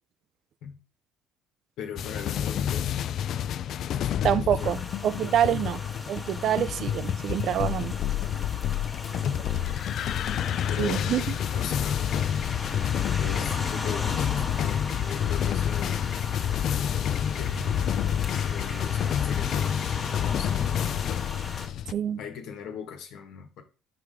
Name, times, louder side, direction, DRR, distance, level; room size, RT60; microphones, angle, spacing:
voice 1, 1.8-3.0 3.9-4.8 5.5-5.7 9.1-9.8 10.7-11.1 11.5-12.2 13.1-15.9 17.3-18.1 18.4-20.8 22.2-23.6, left 6 dB, 70° left, 1.5 m, -40 dB
sound 1, 2.0-21.9, left 10 dB, 50° left, 0.3 m, -28 dB
voice 2, 4.2-5.8 6.1-7.9 10.8-11.4 21.9-22.2, right 10 dB, 50° right, 0.4 m, -26 dB
sound 2, 4.6-21.7, left 2 dB, 20° left, 1.3 m, -39 dB
6.0 x 4.8 x 3.5 m
cardioid pair, 125°, 0 cm